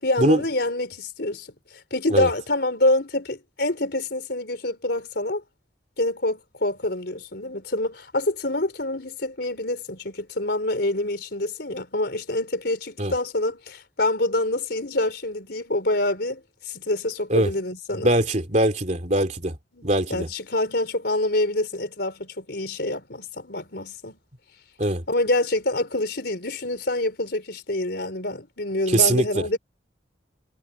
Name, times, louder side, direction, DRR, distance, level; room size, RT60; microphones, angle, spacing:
voice 1, 0.0-1.5 1.9-5.4 6.0-18.1 19.7-24.1 25.1-29.6, left 2 dB, 60° left, 4.5 m, -26 dB
voice 2, 17.9-19.6 19.8-20.3 24.8-25.0 28.9-29.2, right 1 dB, 40° right, 3.0 m, -21 dB
head